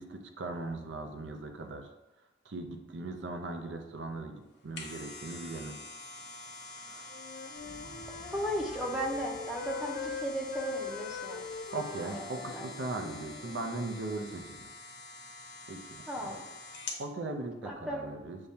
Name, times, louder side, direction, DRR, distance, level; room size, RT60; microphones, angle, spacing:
voice 1, 0.0-1.9 2.5-5.8 6.6-7.1 10.7-10.8 11.7-14.7 15.7-16.4 17.0-18.4, right 2 dB, 80° right, 4 dB, 0.5 m, -39 dB
sound 1, 4.5-17.1 17.5-17.6, left 2 dB, 65° left, 0.8 m, -46 dB
Wind instrument woodwind instrument, 7.1-13.9, left 5 dB, 45° left, 0.4 m, -42 dB
Explosion, 7.5-13.6 13.9-14.0, equal, 60° right, 0.9 m, -57 dB
voice 2, 8.3-11.5 12.0-12.7 16.1-16.4 17.6-18.1, equal, 5° right, -1 dB, 0.5 m, -36 dB
6.4 x 2.2 x 2.7 m, 1.0 s
head